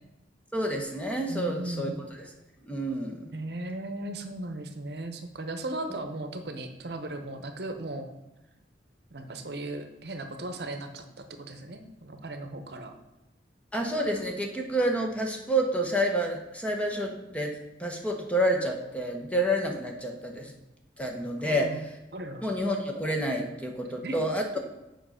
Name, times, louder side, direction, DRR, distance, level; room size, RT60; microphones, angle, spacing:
voice 1, 0.5-2.1 2.7-3.2 13.7-17.5 17.8-20.5 21.0-21.9 22.4-24.6, right 1 dB, 5° left, 2 dB, 1.0 m, -29 dB
voice 2, 1.3-2.1 3.3-8.1 9.1-11.0 11.3-12.9 21.4-21.8 22.1-22.4 24.0-24.2, right 1 dB, 60° right, 7 dB, 0.9 m, -37 dB
7.7 x 5.3 x 5.7 m, 0.99 s
head